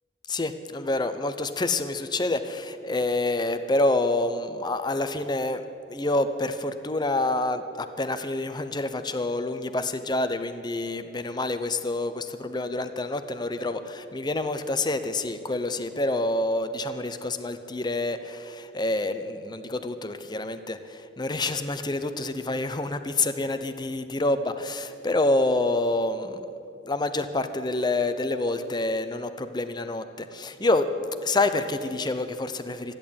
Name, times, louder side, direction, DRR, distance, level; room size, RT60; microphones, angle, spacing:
voice 1, 0.3-5.6 5.9-26.4 26.8-30.9 31.2-32.9, left 2 dB, 25° left, 10 dB, 0.7 m, -27 dB
14.0 x 10.5 x 8.6 m, 2.6 s
head